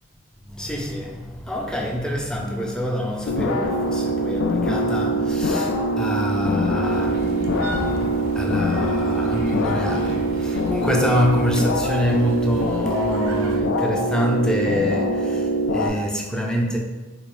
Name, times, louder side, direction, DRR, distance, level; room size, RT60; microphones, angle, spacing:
voice 1, 0.4-16.8, equal, 5° left, 0.3 m, -26 dB
sound 1, 3.3-15.9, right 1 dB, 85° left, 0.3 m, -23 dB
sound 2, 6.8-13.6, right 1 dB, 80° right, 0.4 m, -35 dB
3.7 x 2.3 x 3.3 m
head